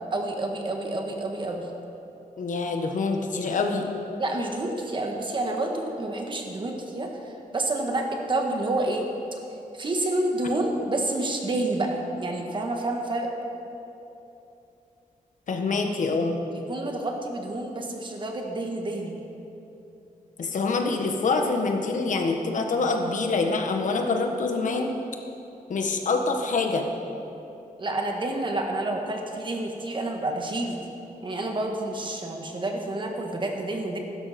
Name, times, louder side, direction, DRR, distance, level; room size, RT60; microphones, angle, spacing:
voice 1, 0.1-1.7 4.2-9.1 9.7-13.3 16.5-19.2 27.8-30.8 31.2-34.0, right 2 dB, 35° right, 2 dB, 1.6 m, -29 dB
voice 2, 2.4-3.9 15.5-16.4 20.4-24.9 25.7-26.9, left 3 dB, 60° left, 3 dB, 1.4 m, -25 dB
16.0 x 12.5 x 4.4 m, 2.9 s
wide cardioid pair, 140°, 14 cm